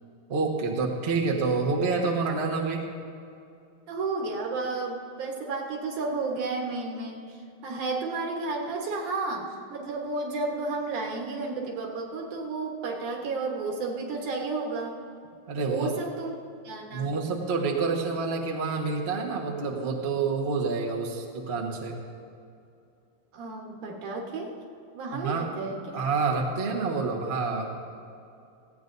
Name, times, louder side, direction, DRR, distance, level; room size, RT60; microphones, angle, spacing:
voice 1, 0.3-2.9 15.5-15.9 16.9-22.0 25.2-25.5 25.9-27.7, right 4 dB, 55° right, -1 dB, 0.7 m, -28 dB
voice 2, 3.9-15.0 15.6-16.4 16.6-17.1 23.3-24.6 24.9-26.0, right 3 dB, 75° right, 1 dB, 2.9 m, -32 dB
18.5 x 16.0 x 2.7 m, 2.5 s
omnidirectional pair, 3.6 m